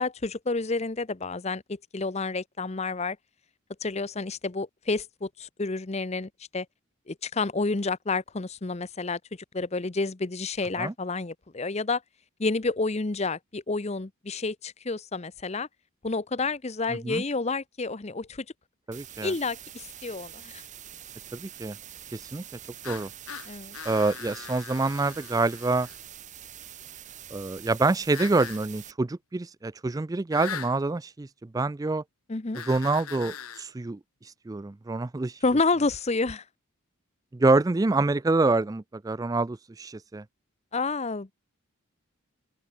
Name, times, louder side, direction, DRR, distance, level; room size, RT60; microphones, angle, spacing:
voice 1, 0.0-3.2 3.8-6.7 7.1-9.2 9.5-12.0 12.4-15.7 16.0-18.4 19.2-20.6 23.5-23.8 32.3-32.6 35.4-36.4 40.7-41.3, left 3 dB, 30° left, 0.7 m, -29 dB
voice 2, 18.9-19.3 21.3-21.8 22.1-22.4 22.9-23.1 23.8-25.9 27.3-31.3 31.5-32.0 32.6-35.4 37.3-40.2, right 3 dB, 15° right, 0.3 m, -26 dB
sound 1, 18.9-28.9, right 10 dB, 35° right, 1.6 m, -45 dB
sound 2, 22.8-26.0 28.1-28.6 30.3-30.8 32.5-33.7, left 8 dB, 85° left, 1.5 m, -40 dB
open air
head